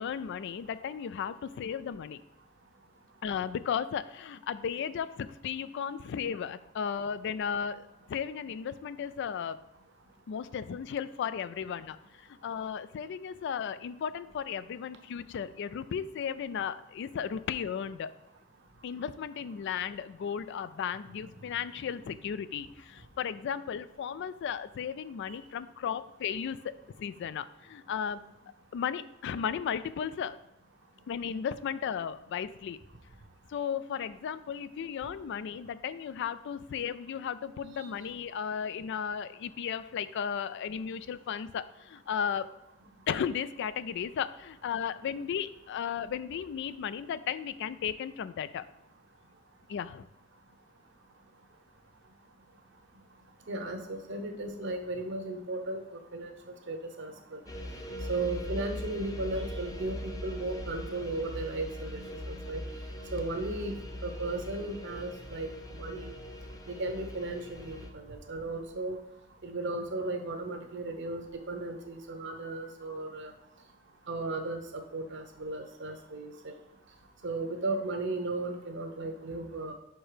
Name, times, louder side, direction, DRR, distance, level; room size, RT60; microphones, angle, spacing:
voice 1, 0.0-2.2 3.2-9.6 10.3-18.1 18.8-26.7 27.0-28.2 28.7-30.4 31.1-32.8 33.5-42.5 43.1-48.7 49.7-50.1, left 7 dB, 60° left, 14 dB, 0.3 m, -35 dB
voice 2, 53.5-55.8 56.1-56.3 56.7-57.4 58.1-60.0 60.2-62.6 63.1-63.7 64.0-66.1 66.7-69.0 69.4-73.3 74.1-76.5 77.2-79.7, right 2 dB, 60° right, 6 dB, 0.9 m, -35 dB
sound 1, 57.5-67.9, equal, 15° left, 0.6 m, -41 dB
5.5 x 4.5 x 5.0 m, 0.87 s
head